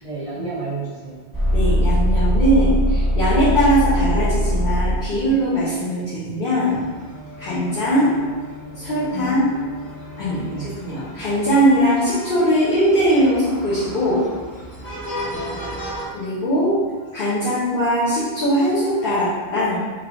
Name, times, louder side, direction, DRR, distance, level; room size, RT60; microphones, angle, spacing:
voice 1, 0.0-1.2 9.1-9.4 10.4-10.7 15.2-15.8, right 2 dB, 35° right, -6 dB, 0.7 m, -32 dB
sound 1, 1.3-5.4 10.9-12.4 12.7-12.8 18.9-19.0, equal, 20° left, 0.8 m, -21 dB
voice 2, 1.5-6.8 7.4-8.1 8.7-9.4 10.2-14.2 16.1-16.7 17.1-19.8, equal, 55° left, -11 dB, 1.2 m, -20 dB
sound 2, 6.7-16.1, equal, 75° left, 1.7 m, -36 dB
3.3 x 3.2 x 3.9 m, 1.4 s
omnidirectional pair, 1.1 m